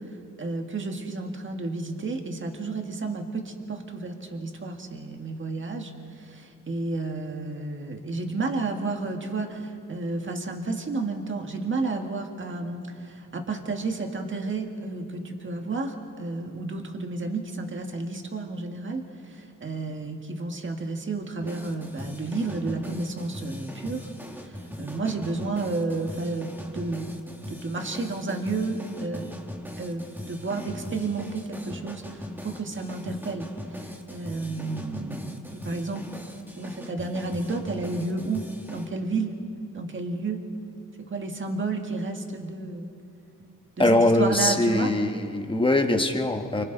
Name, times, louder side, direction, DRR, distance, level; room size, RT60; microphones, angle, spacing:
voice 1, 0.1-24.1 24.4-27.2 27.5-29.3 29.8-36.0 36.6-39.4 39.7-40.4 41.0-42.9 43.8-44.9, right 3 dB, 35° right, 4 dB, 1.8 m, -31 dB
sound 1, 21.4-38.9, left 1 dB, 5° right, 1.6 m, -40 dB
voice 2, 43.8-46.6, left 2 dB, 15° left, 4 dB, 1.2 m, -22 dB
29.0 x 24.5 x 4.0 m, 2.5 s
wide cardioid pair, 150°, 33 cm